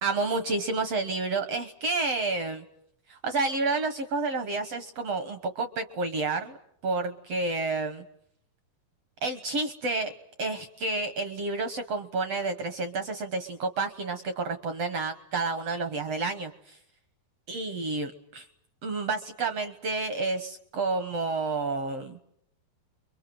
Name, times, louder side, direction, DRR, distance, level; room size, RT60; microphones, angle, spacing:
voice 1, 0.0-2.6 3.1-6.6 6.8-8.0 9.2-10.1 10.4-16.5 17.5-18.4 18.8-22.2, right 3 dB, 70° right, 8 dB, 1.5 m, -30 dB
28.0 x 23.5 x 7.8 m, 0.71 s
omnidirectional pair, 4.6 m